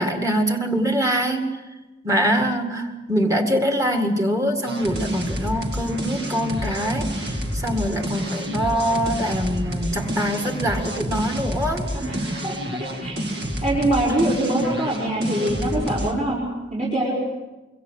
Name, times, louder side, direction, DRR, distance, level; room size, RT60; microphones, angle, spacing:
voice 1, 0.0-1.6 2.0-11.9, equal, 15° right, 5 dB, 2.1 m, -24 dB
sound 1, 4.7-16.1, equal, 60° right, 2.4 m, -29 dB
voice 2, 12.0-12.5 13.0-13.2 13.6-16.4 16.7-17.1, right 1 dB, 40° right, -6 dB, 5.4 m, -23 dB
25.5 x 23.5 x 6.5 m, 1.1 s
head